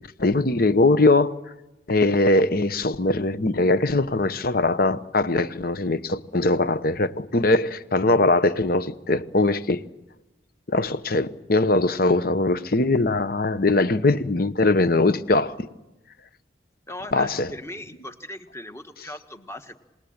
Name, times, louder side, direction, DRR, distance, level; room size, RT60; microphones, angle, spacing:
voice 1, 0.2-1.4 1.9-9.8 10.7-15.7 17.1-17.5, left 2 dB, 50° left, 1.0 m, -21 dB
voice 2, 16.9-19.7, left 1 dB, 15° left, 1.4 m, -38 dB
27.0 x 20.0 x 8.7 m
head